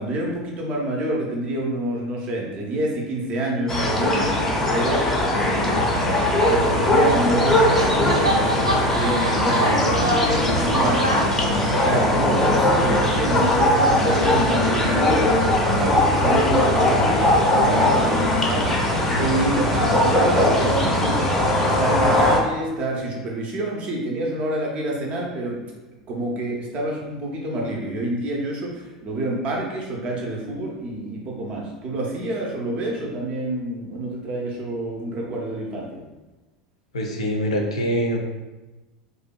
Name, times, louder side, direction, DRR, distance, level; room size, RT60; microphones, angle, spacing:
voice 1, 0.0-5.1 5.3-21.3 21.6-25.6 26.1-36.0, right 1 dB, 35° right, -1 dB, 0.5 m, -27 dB
sound 1, 3.7-22.4, left 1 dB, 10° left, 0.5 m, -20 dB
sound 2, 6.4-7.5 7.7-12.5, right 1 dB, 85° right, 0.3 m, -27 dB
voice 2, 36.9-38.2, equal, 70° left, 1 dB, 0.4 m, -24 dB
2.6 x 2.1 x 2.2 m, 1.1 s
figure-of-eight pair, 80°, 3 cm